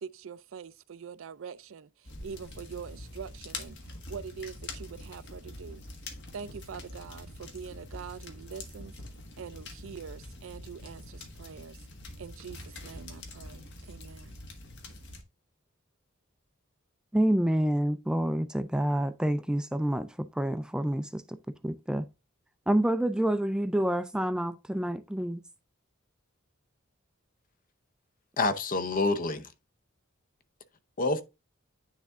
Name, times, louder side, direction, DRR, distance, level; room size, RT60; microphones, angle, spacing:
voice 1, 0.0-5.8 6.3-8.9 9.4-11.8 12.2-14.4, right 6 dB, 70° right, 0.4 m, -44 dB
sound 1, 2.0-15.2, left 2 dB, 60° left, 1.5 m, -45 dB
voice 2, 17.1-21.4 21.6-22.1 22.7-25.4, right 1 dB, 5° right, 0.3 m, -28 dB
voice 3, 28.4-29.5 31.0-31.2, left 3 dB, 45° left, 0.7 m, -27 dB
9.6 x 3.5 x 3.6 m
head